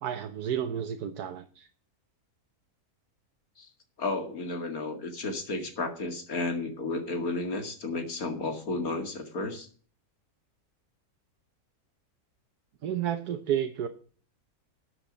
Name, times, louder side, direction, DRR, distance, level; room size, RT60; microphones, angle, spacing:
voice 1, 0.0-1.7 12.8-13.9, right 9 dB, 90° right, 6 dB, 1.4 m, -31 dB
voice 2, 4.0-9.7, left 3 dB, 65° left, 5 dB, 2.6 m, -32 dB
13.0 x 8.0 x 5.1 m, 0.42 s
omnidirectional pair, 1.6 m